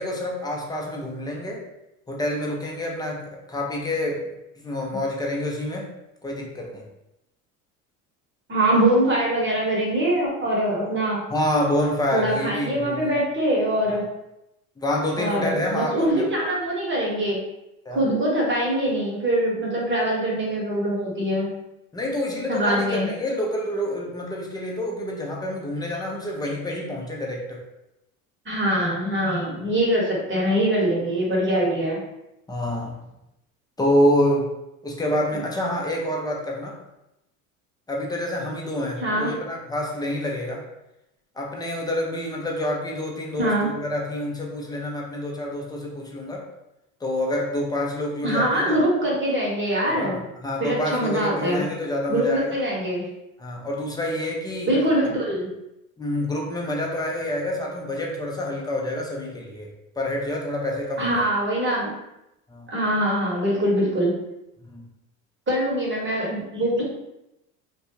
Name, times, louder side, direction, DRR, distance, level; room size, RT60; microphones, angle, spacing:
voice 1, 0.0-1.6 2.1-4.3 4.6-5.9 6.2-6.9 11.3-13.1 14.8-16.3 17.9-18.0 21.9-27.6 32.5-33.0 33.8-34.5 34.8-36.8 37.9-40.7 41.4-46.5 47.0-48.8 50.0-52.6 53.4-54.8 56.0-59.7 60.0-61.2 62.5-62.7 64.7-64.9, left 1 dB, 10° left, -1 dB, 0.6 m, -27 dB
voice 2, 8.5-11.2 12.1-14.0 15.1-17.4 17.9-21.5 22.5-23.1 28.4-32.0 35.3-35.4 39.0-39.4 43.4-43.7 48.2-50.2 50.6-51.6 52.1-53.0 54.7-55.5 61.0-61.9 62.7-64.1 65.5-66.8, right 1 dB, 25° right, -4 dB, 1.2 m, -23 dB
2.4 x 2.3 x 3.0 m, 0.88 s
hypercardioid pair, 80°, 42 cm